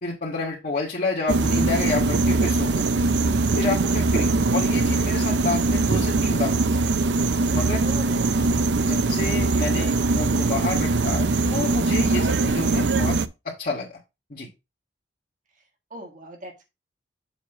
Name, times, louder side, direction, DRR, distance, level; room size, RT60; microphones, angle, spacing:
voice 1, 0.0-2.9 3.5-6.8 7.5-7.8 8.8-13.2 13.5-14.0 14.3-14.5, left 3 dB, 50° left, -4 dB, 1.8 m, -29 dB
sound 1, 1.3-13.3, right 3 dB, 70° right, 0.6 m, -22 dB
voice 2, 7.8-8.6 15.5-15.6 15.9-16.7, right 2 dB, 45° right, 3 dB, 1.6 m, -41 dB
7.2 x 3.1 x 5.9 m, 0.25 s
head